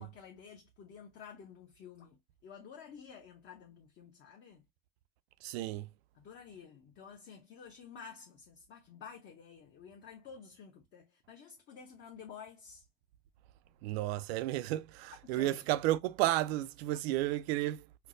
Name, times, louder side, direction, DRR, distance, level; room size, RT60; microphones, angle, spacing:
voice 1, 0.0-4.6 6.1-12.9 15.2-15.6, left 7 dB, 35° left, 0.7 m, -51 dB
voice 2, 5.4-5.9 13.8-17.9, right 15 dB, 80° right, 0.5 m, -32 dB
4.4 x 2.0 x 2.5 m
supercardioid pair, 140°, 31 cm